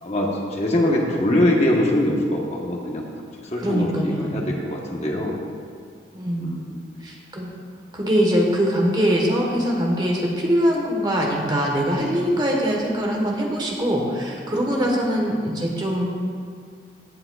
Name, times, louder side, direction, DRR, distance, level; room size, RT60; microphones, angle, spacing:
voice 1, 0.0-3.0 3.4-5.4 6.4-6.9 14.5-14.7, left 1 dB, 35° left, -1 dB, 1.1 m, -23 dB
voice 2, 3.6-4.3 6.1-6.5 7.0-7.5 7.9-16.1, equal, 25° right, -1 dB, 1.2 m, -22 dB
15.5 x 8.6 x 2.3 m, 2.2 s
head